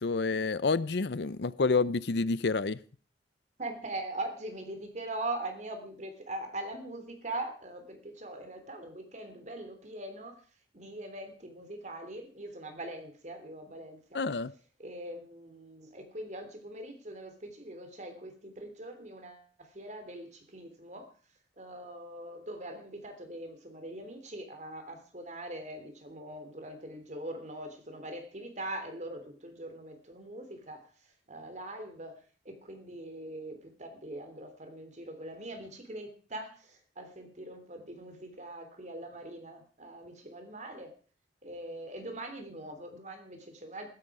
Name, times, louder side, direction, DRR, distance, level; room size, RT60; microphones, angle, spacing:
voice 1, 0.0-2.8 14.1-14.5, left 4 dB, 65° left, 0.6 m, -28 dB
voice 2, 3.6-10.3 10.7-14.2 14.8-21.1 21.6-32.1 32.4-40.9 41.4-43.9, right 1 dB, 40° right, 3.2 m, -42 dB
15.0 x 13.5 x 4.9 m
head